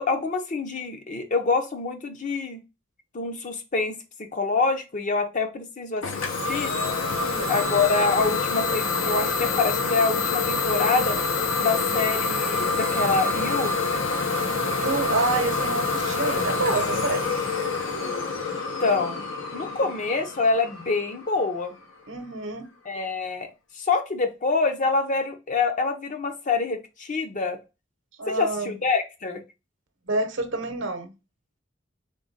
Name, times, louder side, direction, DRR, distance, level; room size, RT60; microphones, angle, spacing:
voice 1, 0.0-2.6 3.1-6.7 7.5-11.2 11.6-13.7 18.8-21.8 22.9-23.5 23.8-27.6 28.3-29.4, left 4 dB, 40° left, 0.7 m, -26 dB
Idling / Domestic sounds home sounds, 6.0-21.6, left 4 dB, 85° left, 0.9 m, -26 dB
voice 2, 7.2-7.6 14.7-17.3 22.1-22.7 28.2-28.7 30.1-31.1, right 2 dB, 70° right, 0.8 m, -28 dB
3.8 x 3.6 x 3.9 m
head